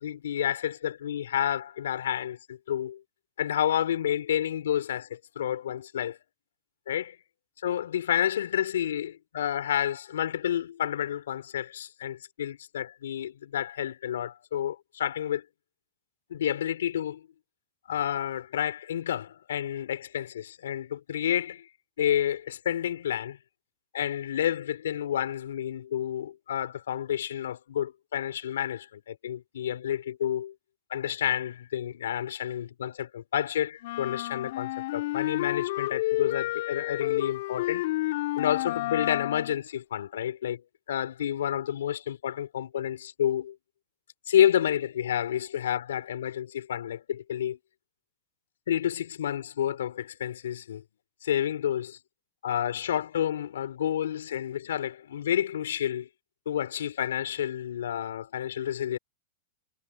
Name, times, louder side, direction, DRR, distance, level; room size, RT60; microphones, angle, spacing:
voice 1, 0.0-3.0 3.4-6.2 6.9-7.2 7.6-15.4 16.3-17.3 17.9-21.7 22.0-23.4 23.9-30.5 30.9-37.9 38.4-40.6 40.9-43.6 44.3-47.6 48.7-50.8 51.2-52.0 52.4-56.1 56.5-59.0, left 10 dB, 85° left, 4.6 m, -30 dB
sound 1, 33.8-39.6, left 18 dB, 65° left, 2.8 m, -30 dB
hypercardioid pair, 130°, 0 cm